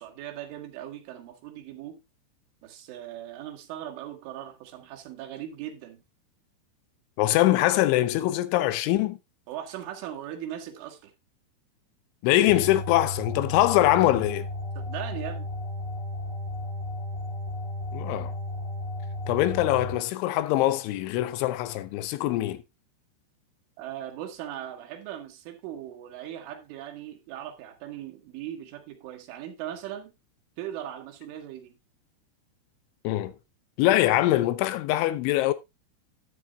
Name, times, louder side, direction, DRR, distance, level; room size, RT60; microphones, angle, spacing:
voice 1, 0.0-2.0 2.6-6.0 9.5-11.1 14.8-15.5 23.8-30.1 30.6-31.8, right 11 dB, 80° right, 4.1 m, -39 dB
voice 2, 7.2-9.2 12.2-14.5 17.9-18.3 19.3-22.6 33.0-33.3 33.8-35.5, left 15 dB, 80° left, 3.0 m, -23 dB
sound 1, 12.5-20.0, left 1 dB, 55° left, 5.7 m, -34 dB
13.0 x 9.9 x 2.3 m
omnidirectional pair, 5.6 m